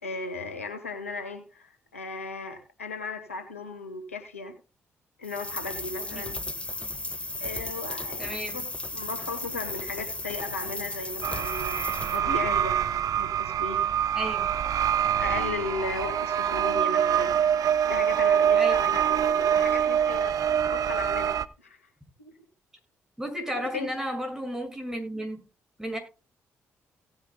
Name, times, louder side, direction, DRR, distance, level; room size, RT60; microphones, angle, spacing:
voice 1, 0.0-4.6 5.2-6.4 7.4-8.7 8.9-12.8 13.2-14.0 15.2-17.3 17.9-21.9 22.2-22.3 23.5-23.9, left 3 dB, 90° left, 8 dB, 1.4 m, -36 dB
sound 1, 5.2-12.2, left 2 dB, 15° left, 1.6 m, -35 dB
voice 2, 8.2-8.6 14.1-14.6 18.5-18.7 19.5-19.6 23.2-25.5 25.8-26.0, equal, 5° right, 2 dB, 6.1 m, -33 dB
sound 2, 11.2-21.5, right 9 dB, 55° right, 0.7 m, -25 dB
17.5 x 9.7 x 2.2 m, 0.32 s
figure-of-eight pair, 40°, 7 cm